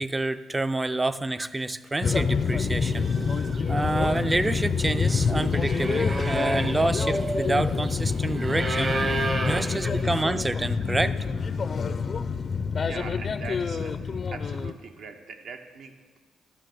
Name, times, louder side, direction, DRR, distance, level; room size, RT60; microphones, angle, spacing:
voice 1, 0.0-3.1 3.7-9.0 9.4-11.2, right 2 dB, 15° right, 13 dB, 0.4 m, -28 dB
sound 1, 2.0-14.7, left 5 dB, 40° left, 0.4 m, -27 dB
sound 2, 2.5-2.6 2.9-10.0, right 2 dB, 35° right, 0.9 m, -33 dB
sound 3, 4.7-10.6, right 2 dB, 85° right, 3.5 m, -54 dB
voice 2, 12.8-16.2, right 5 dB, 70° right, 5 dB, 0.9 m, -41 dB
11.5 x 5.2 x 6.5 m, 1.4 s
cardioid pair, 90°, 0 cm